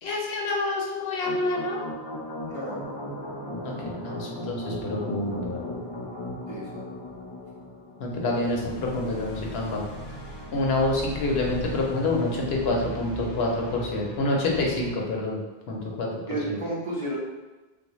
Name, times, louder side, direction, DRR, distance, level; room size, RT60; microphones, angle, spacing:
voice 1, 0.0-1.8 3.6-5.7 8.0-9.8 10.5-15.4 15.7-16.1 16.5-16.6, left 2 dB, 80° left, -1 dB, 0.9 m, -27 dB
sound 1, 1.2-14.9, left 1 dB, 40° left, 0.4 m, -37 dB
voice 2, 2.5-2.9 6.5-6.8 8.3-8.5 16.3-17.2, right 1 dB, 35° right, -7 dB, 0.8 m, -32 dB
3.6 x 2.2 x 3.0 m, 1.2 s
omnidirectional pair, 1.0 m